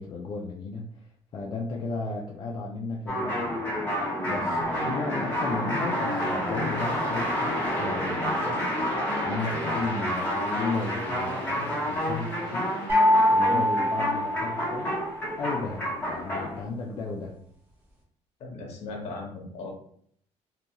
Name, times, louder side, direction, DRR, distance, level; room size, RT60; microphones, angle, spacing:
voice 1, 0.0-3.7 4.3-8.7 9.2-15.0 15.4-17.3, left 3 dB, 40° left, -2 dB, 0.3 m, -35 dB
sound 1, 3.1-16.6, equal, 15° left, 0.9 m, -29 dB
sound 2, 12.9-15.0, equal, 15° right, 0.7 m, -23 dB
voice 2, 18.4-19.7, left 3 dB, 60° left, 0 dB, 0.8 m, -37 dB
2.6 x 2.3 x 2.8 m, 0.63 s
cardioid pair, 160°, 12 cm